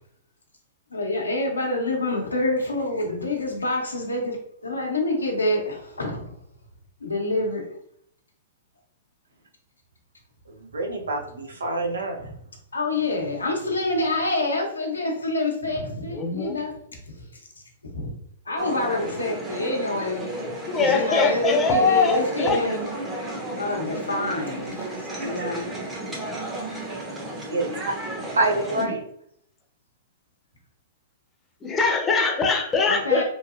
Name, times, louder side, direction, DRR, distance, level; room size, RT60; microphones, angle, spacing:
voice 1, 0.9-4.4 4.6-6.3 7.0-7.6 12.2-12.3 12.7-16.7 17.0-17.4 17.9-18.1 18.5-20.3 20.7-22.8 23.6-25.7 32.8-33.2, left 2 dB, 90° left, 0 dB, 0.8 m, -26 dB
voice 2, 10.5-12.2 27.3-27.8 28.3-29.0, right 2 dB, 80° right, 2 dB, 0.6 m, -26 dB
voice 3, 16.1-16.6 20.7-22.6 28.8-29.0 31.6-33.2, left 4 dB, 20° left, 3 dB, 0.7 m, -22 dB
sound 1, 18.6-28.9, right 1 dB, 15° right, 0.7 m, -33 dB
3.0 x 2.6 x 2.4 m, 0.69 s
hypercardioid pair, 110°, 0 cm